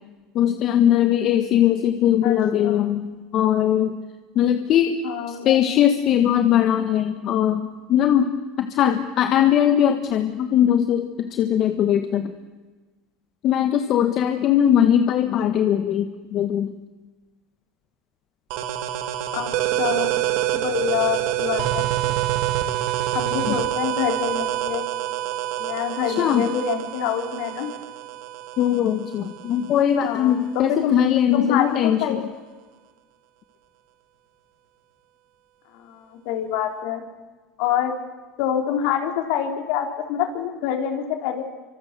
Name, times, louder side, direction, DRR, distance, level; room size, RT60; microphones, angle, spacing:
voice 1, 0.3-4.0 4.3-5.0 5.3-12.3 13.4-16.7 23.5-23.6 26.1-26.5 28.6-32.2, left 10 dB, 50° left, 7 dB, 1.5 m, -20 dB
voice 2, 2.2-2.9 5.0-5.6 19.3-19.5 19.8-20.2 20.5-22.1 23.1-24.8 25.6-27.7 30.0-31.0 31.3-32.2 35.7-37.0 37.6-38.0 38.4-41.4, left 9 dB, 70° left, 4 dB, 3.9 m, -26 dB
sound 1, 18.5-29.9, right 13 dB, 70° right, 1.7 m, -26 dB
26.5 x 25.0 x 6.9 m, 1.3 s
supercardioid pair, 105°, 0 cm